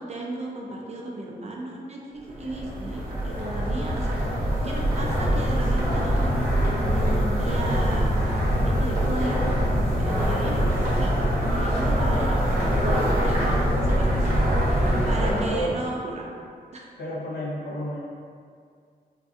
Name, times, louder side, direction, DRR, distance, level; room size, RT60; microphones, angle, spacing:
voice 1, 0.0-8.1 8.6-9.6 10.0-13.5 13.8-14.4 14.6-16.3 16.7-16.9, right 2 dB, 45° right, -2 dB, 0.4 m, -35 dB
sound 1, 2.3-15.8, equal, 70° right, 0.8 m, -23 dB
voice 2, 10.3-10.6 14.3-14.5 15.1-15.8 17.0-18.0, equal, 80° left, -6 dB, 0.6 m, -31 dB
2.6 x 2.3 x 2.4 m, 2.2 s
cardioid pair, 80°, 16 cm